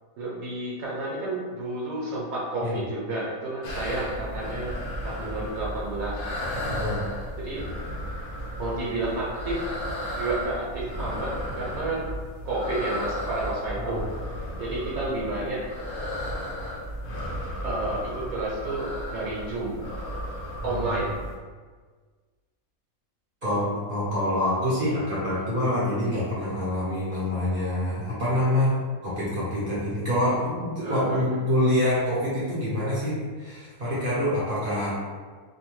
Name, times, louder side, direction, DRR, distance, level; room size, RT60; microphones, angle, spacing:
voice 1, 0.2-4.8 5.0-6.3 7.4-7.6 8.6-9.6 10.1-11.3 11.6-12.1 12.4-14.0 14.6-15.6 17.6-19.8 20.6-21.2 30.8-31.4, right 2 dB, 75° right, -5 dB, 1.1 m, -30 dB
sound 1, 3.6-21.3, equal, 70° left, 0.5 m, -34 dB
voice 2, 6.7-7.0 13.8-14.0 20.6-20.9 23.4-34.9, left 1 dB, 45° right, -10 dB, 0.8 m, -26 dB
2.7 x 2.1 x 3.0 m, 1.5 s
omnidirectional pair, 1.5 m